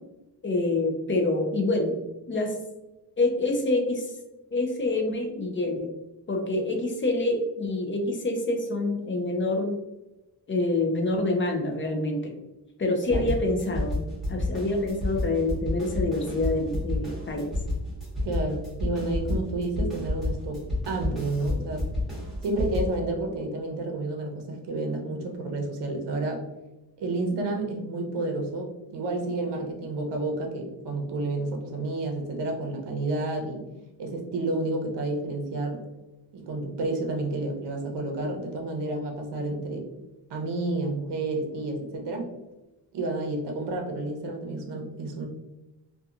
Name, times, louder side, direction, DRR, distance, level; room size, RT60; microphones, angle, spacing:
voice 1, 0.4-2.0 2.3-2.5 3.2-4.1 4.5-5.9 6.3-9.8 10.5-12.3 12.8-14.0 14.3-17.6, left 2 dB, 30° left, 3 dB, 0.3 m, -26 dB
sound 1, 13.1-23.0, left 1 dB, ahead, 1.0 m, -30 dB
voice 2, 18.2-21.9 22.4-26.4 27.0-33.6 34.0-35.8 36.3-39.9 40.3-42.3 42.9-45.3, right 2 dB, 65° right, 2 dB, 0.7 m, -30 dB
2.8 x 2.3 x 2.4 m, 1.0 s
wide cardioid pair, 140°, 44 cm